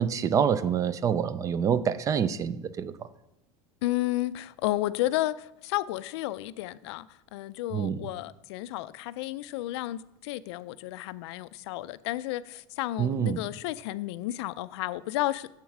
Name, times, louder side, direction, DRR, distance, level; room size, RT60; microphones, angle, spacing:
voice 1, 0.0-2.9 7.7-8.0 13.0-13.4, right 7 dB, 25° right, 0.3 m, -26 dB
voice 2, 3.8-15.5, left 16 dB, 80° left, 0.4 m, -32 dB
7.4 x 7.1 x 4.7 m
supercardioid pair, 150°, 14 cm